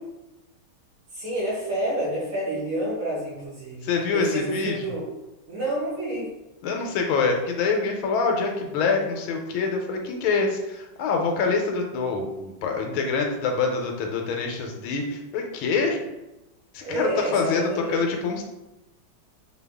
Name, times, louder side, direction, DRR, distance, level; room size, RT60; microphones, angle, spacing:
voice 1, 1.1-3.9 4.1-5.1 5.5-6.3 16.8-18.0, right 1 dB, 80° right, -8 dB, 2.4 m, -29 dB
voice 2, 3.8-4.8 6.6-16.0 16.7-18.4, left 4 dB, 80° left, 2 dB, 1.4 m, -25 dB
5.1 x 2.3 x 3.4 m, 0.99 s
omnidirectional pair, 2.3 m